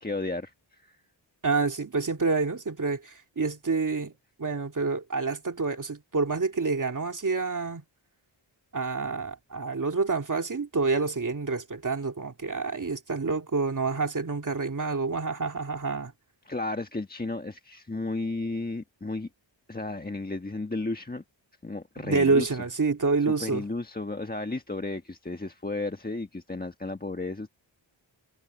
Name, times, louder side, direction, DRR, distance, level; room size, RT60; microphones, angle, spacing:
voice 1, 0.0-1.0 16.4-19.3 19.7-21.2 21.6-22.6 23.3-27.5, left 2 dB, 20° left, 1.4 m, -33 dB
voice 2, 1.4-4.1 4.4-7.8 8.7-16.1 22.0-23.6, right 4 dB, 40° right, 2.7 m, -28 dB
wide cardioid pair, 90°, 47 cm